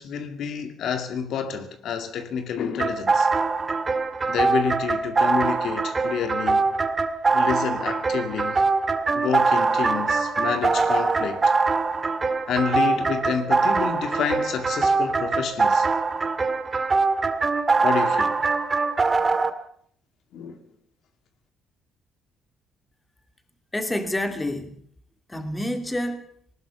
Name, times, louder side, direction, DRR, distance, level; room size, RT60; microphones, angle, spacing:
voice 1, 0.0-3.3 4.3-6.7 7.3-8.6 9.1-11.4 12.5-15.9 17.8-18.4 20.3-20.6, left 7 dB, 65° left, 2.2 m, -29 dB
sound 1, 2.8-19.5, right 4 dB, 25° right, 1.9 m, -23 dB
voice 2, 23.7-24.8 25.3-26.3, left 1 dB, 15° left, 2.8 m, -28 dB
19.5 x 19.5 x 6.9 m
cardioid pair, 105°, 0 cm